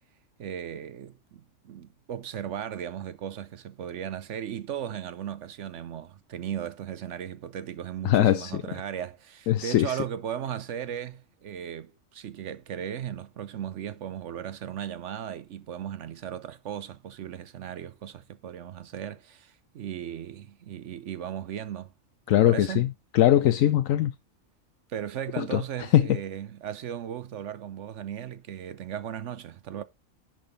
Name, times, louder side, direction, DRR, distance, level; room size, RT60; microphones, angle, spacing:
voice 1, 0.4-21.9 22.3-22.9 24.9-29.8, right 9 dB, 65° right, 1.0 m, -36 dB
voice 2, 8.0-8.5 9.5-10.0 22.3-22.9 23.1-24.1 25.4-25.6 25.9-26.2, left 12 dB, 80° left, 1.0 m, -21 dB
10.5 x 3.9 x 5.1 m
omnidirectional pair, 1.4 m